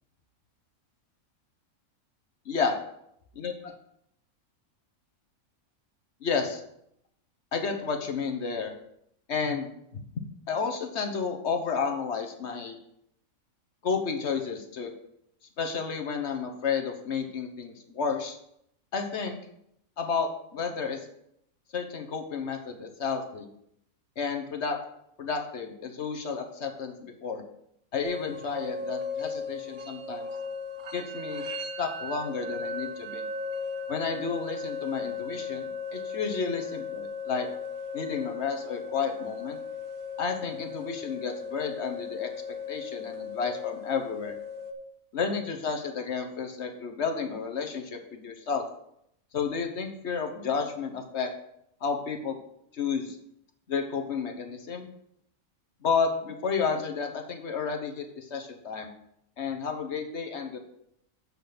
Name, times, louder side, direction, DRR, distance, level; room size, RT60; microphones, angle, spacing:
voice 1, 2.5-2.8 3.4-3.5 6.2-6.6 7.5-8.7 9.3-10.0 10.5-12.8 13.8-14.9 15.6-18.4 18.9-19.4 20.0-21.1 21.7-23.5 24.2-24.8 25.2-27.4 27.9-30.3 30.9-31.4 31.8-33.2 33.9-37.5 37.9-39.6 40.2-44.4 45.1-48.6 49.3-51.3 51.8-52.4 52.7-53.2 53.7-54.9 55.8-58.9 59.4-60.6, left 5 dB, 55° left, 5 dB, 1.3 m, -31 dB
sound 1, 28.0-44.7, left 4 dB, 90° right, 1.4 m, -37 dB
8.0 x 6.3 x 5.1 m, 0.75 s
omnidirectional pair, 1.5 m